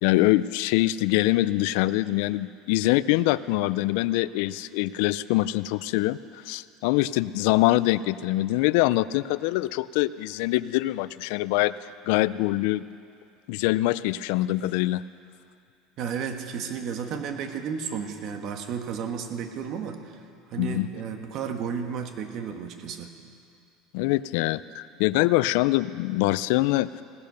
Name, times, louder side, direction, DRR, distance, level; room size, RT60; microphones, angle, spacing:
voice 1, 0.0-12.8 13.5-15.0 20.6-20.9 23.9-27.0, left 17 dB, 75° left, 17 dB, 0.3 m, -24 dB
voice 2, 16.0-20.2 20.5-23.1, right 7 dB, 50° right, 6 dB, 1.3 m, -33 dB
17.0 x 10.5 x 6.7 m, 2.4 s
cardioid pair, 140°, 0 cm